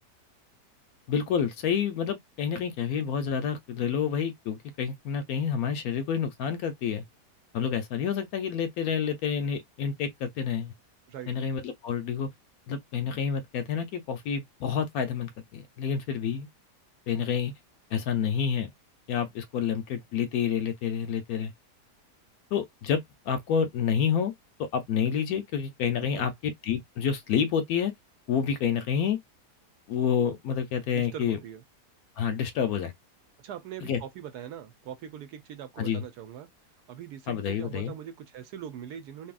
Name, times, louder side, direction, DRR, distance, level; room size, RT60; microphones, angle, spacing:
voice 1, 1.1-7.0 7.5-10.7 11.3-12.3 12.7-16.5 17.1-17.5 17.9-18.7 19.1-21.5 22.5-23.0 23.3-24.3 24.7-27.9 28.3-29.2 29.9-31.4 32.2-32.9 33.8-34.0 35.8-36.0 37.3-37.9, left 7 dB, 70° left, 1.0 m, -28 dB
voice 2, 30.9-31.6 33.4-36.5 36.9-39.3, right 9 dB, 75° right, 1.1 m, -41 dB
2.8 x 2.6 x 2.3 m
omnidirectional pair, 1.8 m